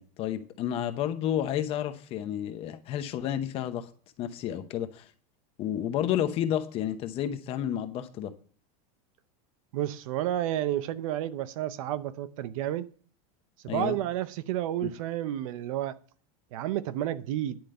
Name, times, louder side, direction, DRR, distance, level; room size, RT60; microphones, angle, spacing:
voice 1, 0.0-3.9 4.2-5.1 5.6-8.3 13.7-14.0 14.8-14.9, left 10 dB, 30° left, 0.8 m, -31 dB
voice 2, 9.7-12.9 13.6-16.0 16.5-17.6, right 12 dB, 60° right, 0.7 m, -31 dB
10.5 x 5.2 x 7.7 m
supercardioid pair, 175°, 20 cm